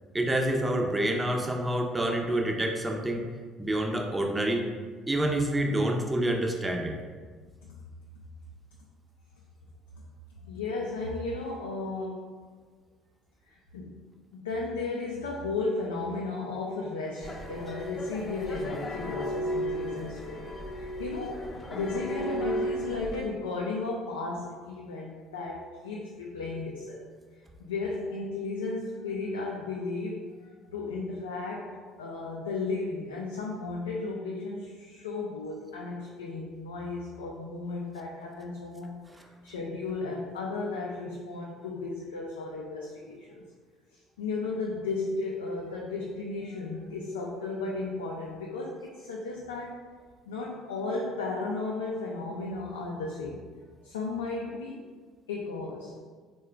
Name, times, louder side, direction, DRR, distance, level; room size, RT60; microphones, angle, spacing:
voice 1, 0.1-3.3 3.6-4.6 5.1-7.0, right 1 dB, 15° right, 1 dB, 0.5 m, -27 dB
voice 2, 10.4-12.4 13.5-14.0 14.3-27.0 27.6-39.0 39.4-43.4 44.2-49.8 50.3-53.4 53.8-54.8 55.3-56.0, left 3 dB, 90° left, -2 dB, 0.3 m, -34 dB
sound 1, 17.2-23.2, equal, 30° left, 0.6 m, -34 dB
3.6 x 2.2 x 3.3 m, 1.5 s
hypercardioid pair, 60°, 0 cm